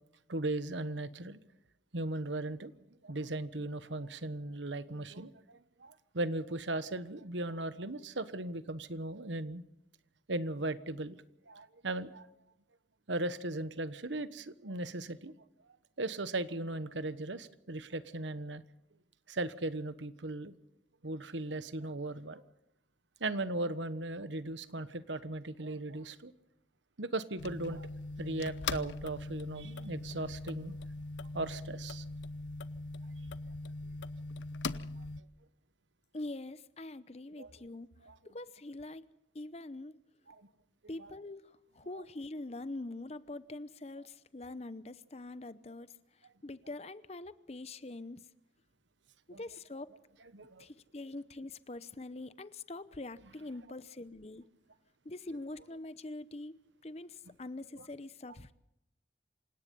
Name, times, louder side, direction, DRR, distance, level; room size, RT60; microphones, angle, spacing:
voice 1, 0.3-1.4 1.9-2.7 3.0-9.6 10.3-11.2 11.5-12.3 13.1-15.3 16.0-18.6 19.3-20.5 21.0-22.4 23.2-26.3 27.0-27.9 28.2-30.8 31.3-32.0 34.9-35.0 37.4-37.5 38.0-38.1 40.3-40.5 49.3-49.4 50.3-50.6 57.8-57.9, right 2 dB, 90° right, 1.3 m, -37 dB
sound 1, 27.4-35.2, left 3 dB, 85° left, 0.8 m, -41 dB
voice 2, 36.1-37.9 38.2-39.1 39.3-40.0 40.9-48.3 49.3-49.9 50.6-54.5 55.0-58.5, left 2 dB, 35° left, 0.8 m, -44 dB
27.5 x 17.5 x 5.5 m
head